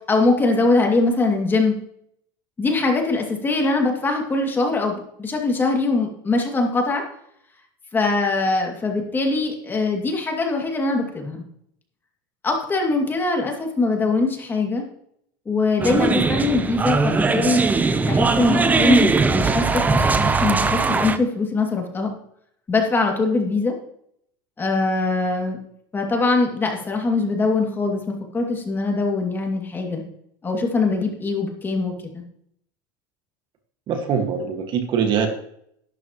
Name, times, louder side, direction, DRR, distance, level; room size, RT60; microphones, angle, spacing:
voice 1, 0.1-1.7 2.6-7.0 7.9-11.4 12.4-14.8 15.5-17.6 18.0-22.1 22.7-23.7 24.6-25.6 25.9-30.0 30.4-32.2, left 3 dB, 20° left, 1 dB, 2.4 m, -22 dB
sound 1, 15.8-21.2, right 4 dB, 15° right, 0.7 m, -20 dB
voice 2, 33.9-35.3, right 7 dB, 45° right, 5 dB, 1.8 m, -23 dB
12.0 x 12.0 x 3.0 m, 0.69 s
supercardioid pair, 130°, 11 cm